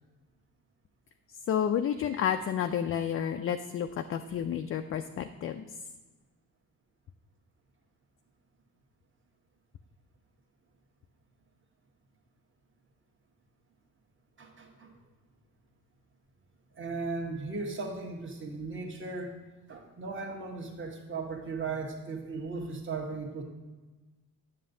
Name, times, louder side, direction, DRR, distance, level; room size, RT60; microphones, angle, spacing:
voice 1, 1.5-5.6, left 8 dB, 35° left, 8 dB, 0.4 m, -30 dB
voice 2, 14.4-14.9 16.7-19.4 19.7-23.4, right 3 dB, 30° right, 2 dB, 1.3 m, -37 dB
7.5 x 6.8 x 2.7 m, 1.2 s
hypercardioid pair, 55°, 40 cm